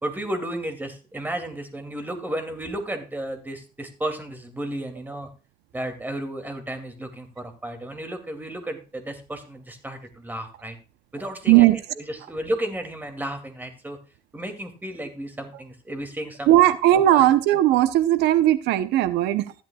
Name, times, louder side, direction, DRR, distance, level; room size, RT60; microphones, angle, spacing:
voice 1, 0.0-5.3 5.7-10.8 11.1-11.7 12.0-14.0 14.3-16.5 16.9-17.2, right 1 dB, 10° right, 6 dB, 2.5 m, -33 dB
voice 2, 11.5-11.8 16.5-19.5, right 14 dB, 85° right, 13 dB, 0.8 m, -18 dB
14.5 x 11.5 x 2.3 m, 0.33 s
cardioid pair, 110°, 17 cm